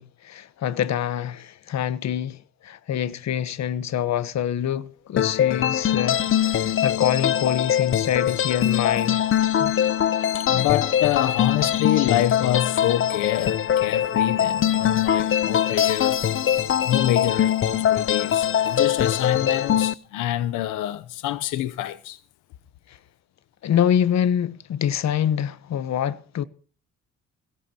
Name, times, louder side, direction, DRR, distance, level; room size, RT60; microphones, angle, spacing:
voice 1, 0.0-9.2 9.6-9.7 22.9-23.0 23.6-26.4, left 9 dB, 60° left, 1.1 m, -25 dB
sound 1, 5.2-19.9, left 10 dB, 45° left, 0.7 m, -22 dB
voice 2, 10.3-16.2 16.8-22.2, left 13 dB, 90° left, 0.9 m, -26 dB
21.0 x 17.0 x 2.9 m
cardioid pair, 90°, 30 cm